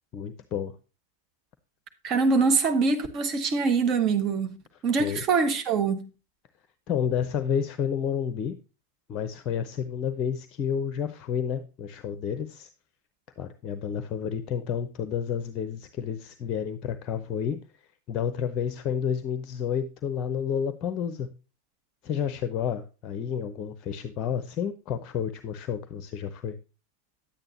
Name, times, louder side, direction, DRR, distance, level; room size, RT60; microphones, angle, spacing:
voice 1, 0.1-0.7 5.0-5.2 6.9-8.5 9.1-12.7 13.4-17.6 18.1-21.3 22.0-26.5, left 8 dB, 35° left, 0.7 m, -30 dB
voice 2, 2.0-4.6 4.8-6.0, right 4 dB, 35° right, 1.3 m, -24 dB
10.0 x 8.9 x 2.8 m
figure-of-eight pair, 90°, 0 cm